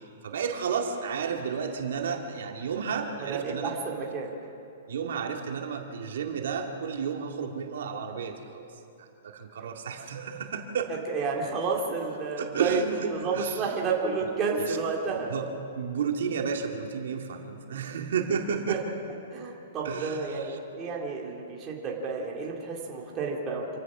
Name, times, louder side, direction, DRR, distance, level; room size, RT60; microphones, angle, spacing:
voice 1, 0.2-3.8 4.9-8.7 9.0-10.9 12.4-13.6 14.6-14.8 15.3-15.5 15.7-18.8 19.8-20.6, right 6 dB, 70° right, 2 dB, 2.2 m, -32 dB
voice 2, 3.2-4.3 11.1-12.8 13.1-15.3 18.7-18.8 19.3-23.7, right 4 dB, 20° right, -2 dB, 2.4 m, -31 dB
27.0 x 16.0 x 6.2 m, 2.7 s
hypercardioid pair, 170°, 0 cm